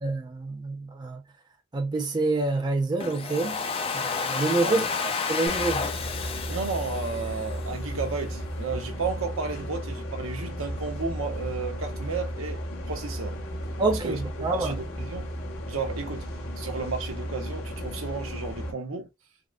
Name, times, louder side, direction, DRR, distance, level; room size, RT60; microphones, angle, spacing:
voice 1, 0.0-1.2 1.7-3.6 3.9-4.9 5.3-5.8 13.8-14.7, right 3 dB, 20° right, 0.6 m, -27 dB
Domestic sounds home sounds, 3.0-8.0, left 5 dB, 25° left, 0.4 m, -31 dB
voice 2, 4.6-5.0 5.3-5.4 6.5-12.6 12.9-13.4 13.9-15.3 15.7-16.3 16.6-19.1, right 4 dB, 75° right, 0.7 m, -33 dB
sound 1, 5.5-18.7, equal, 80° left, 1.2 m, -34 dB
3.6 x 2.0 x 2.4 m
head